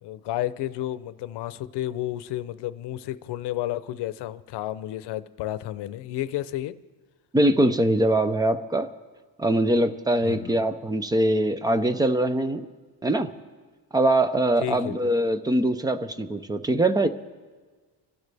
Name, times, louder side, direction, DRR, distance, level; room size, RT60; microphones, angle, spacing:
voice 1, 0.0-6.8 10.2-10.6 14.6-15.1, left 14 dB, 80° left, 15 dB, 0.7 m, -31 dB
voice 2, 7.3-8.9 9.4-12.7 13.0-13.3 13.9-17.1, right 1 dB, 10° right, 11 dB, 0.4 m, -22 dB
26.0 x 12.0 x 3.4 m, 1.4 s
cardioid pair, 170°, 40 cm